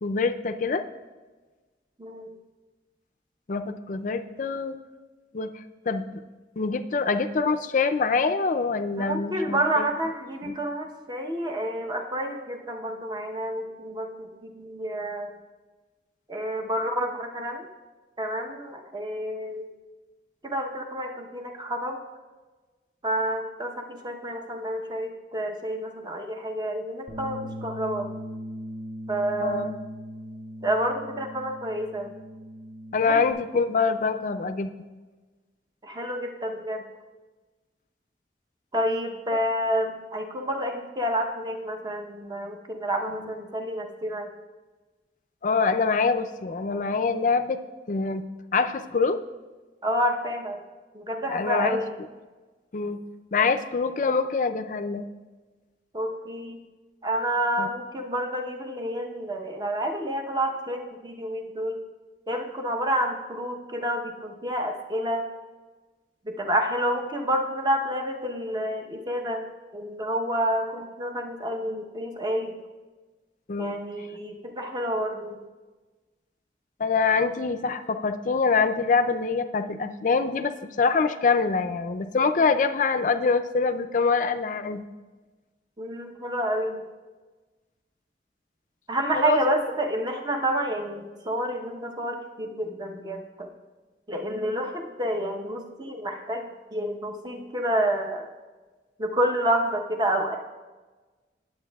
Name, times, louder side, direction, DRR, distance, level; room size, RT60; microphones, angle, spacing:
voice 1, 0.0-0.8 3.5-4.8 5.3-6.1 6.6-9.9 10.5-10.6 29.4-29.8 32.9-34.7 43.0-43.3 45.4-47.6 47.9-48.2 48.5-49.2 51.3-51.8 52.7-53.0 53.3-55.0 57.6-57.7 73.5-73.8 76.8-84.8 89.1-89.4, left 4 dB, 45° left, 10 dB, 0.5 m, -25 dB
voice 2, 2.0-2.3 9.0-15.3 16.3-17.7 18.2-19.7 20.4-22.0 23.0-28.1 29.1-29.7 30.6-32.1 33.0-33.2 35.8-36.8 38.7-44.3 49.8-50.6 50.9-51.9 55.9-56.6 57.0-61.8 62.3-65.3 66.2-69.4 69.7-72.6 73.6-75.4 85.8-86.8 88.9-93.5 94.1-98.3 99.0-100.4, right 1 dB, 25° right, 3 dB, 0.8 m, -29 dB
Bass guitar, 27.1-33.3, equal, 45° right, 2.1 m, -39 dB
19.0 x 7.9 x 2.3 m, 1.3 s
head